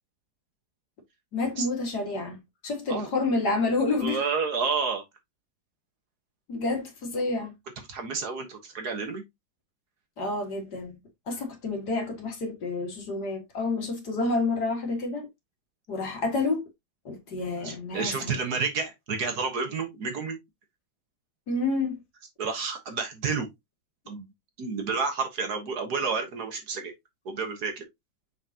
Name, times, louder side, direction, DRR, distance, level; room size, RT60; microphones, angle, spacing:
voice 1, 1.3-2.4 2.6-4.2 6.5-7.5 10.2-11.0 11.3-15.3 15.9-16.6 17.1-18.4 21.5-22.0, left 3 dB, 60° left, 2.5 m, -29 dB
voice 2, 4.0-5.0 7.9-9.2 17.6-20.4 22.4-23.5 24.1-24.3 24.6-26.9 27.3-27.9, right 5 dB, 60° right, 1.7 m, -30 dB
6.4 x 5.2 x 2.8 m
omnidirectional pair, 2.1 m